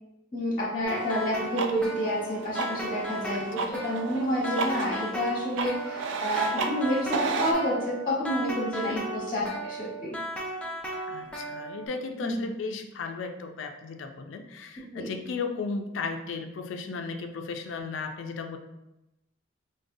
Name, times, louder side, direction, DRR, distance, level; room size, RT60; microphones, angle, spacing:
voice 1, 0.3-10.2 12.2-12.4 14.9-15.1, equal, 25° left, -7 dB, 1.0 m, -29 dB
sound 1, 0.8-11.9, right 1 dB, 5° left, 0.4 m, -36 dB
sound 2, 1.0-7.5, right 4 dB, 70° right, 0.3 m, -34 dB
voice 2, 3.3-3.7 8.8-9.0 11.1-18.6, left 4 dB, 75° left, 6 dB, 0.4 m, -35 dB
4.7 x 2.2 x 2.6 m, 0.92 s
head